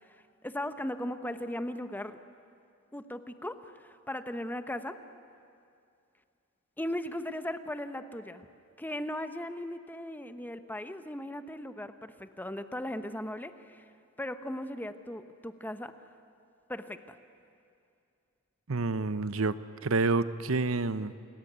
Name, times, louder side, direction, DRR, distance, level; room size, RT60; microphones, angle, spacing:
voice 1, 0.0-2.2 2.9-5.0 6.8-8.5 8.8-13.9 14.2-15.9 16.7-17.2, left 1 dB, 10° left, 10 dB, 1.0 m, -38 dB
voice 2, 18.7-19.6 19.8-21.1, right 3 dB, 80° right, 14 dB, 0.9 m, -28 dB
29.0 x 21.0 x 9.5 m, 2.4 s
head